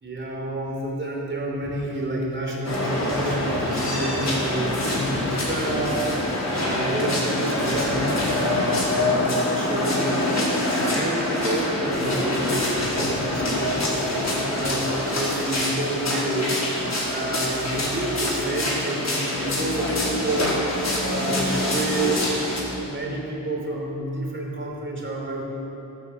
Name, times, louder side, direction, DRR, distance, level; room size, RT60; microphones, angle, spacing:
voice 1, 0.0-6.1 6.5-16.5 17.1-20.6 21.0-22.3 22.8-25.4, right 1 dB, 35° right, -2 dB, 3.4 m, -29 dB
sound 1, 2.6-22.6, left 1 dB, 50° left, 4.8 m, -25 dB
15.5 x 12.0 x 7.6 m, 3.0 s
wide cardioid pair, 130°, 35 cm